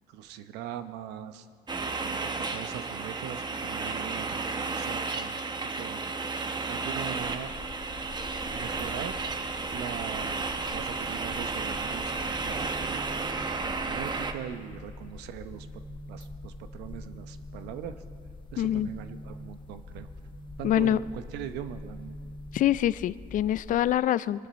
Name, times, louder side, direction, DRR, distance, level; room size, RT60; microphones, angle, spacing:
voice 1, 0.1-1.5 2.0-5.5 5.8-6.0 6.7-7.5 8.5-9.1 9.7-10.5 10.7-13.3 13.6-15.8 16.1-18.0 18.5-20.1 20.6-22.1, right 10 dB, 90° right, 10 dB, 0.9 m, -41 dB
sound 1, 1.7-14.3, right 4 dB, 25° right, 1.0 m, -33 dB
sound 2, 7.2-23.9, left 3 dB, 30° left, 0.8 m, -46 dB
sound 3, 11.4-22.9, right 1 dB, 40° right, 1.4 m, -48 dB
voice 2, 18.6-18.9 20.6-21.0 22.5-24.5, left 12 dB, 50° left, 18 dB, 0.4 m, -25 dB
23.0 x 12.5 x 4.3 m, 2.1 s
cardioid pair, 110°, 17 cm